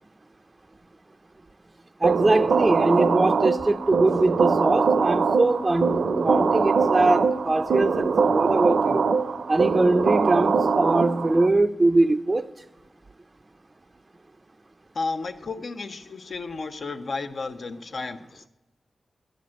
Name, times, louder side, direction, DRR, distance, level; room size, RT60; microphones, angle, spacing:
voice 1, 2.0-9.0 9.5-12.5, right 2 dB, 25° right, 0.4 m, -22 dB
sound 1, 2.0-11.5, right 5 dB, 80° right, 0.6 m, -22 dB
voice 2, 14.9-18.5, left 3 dB, 60° left, 0.8 m, -33 dB
11.5 x 9.2 x 7.5 m
wide cardioid pair, 90°, 0 cm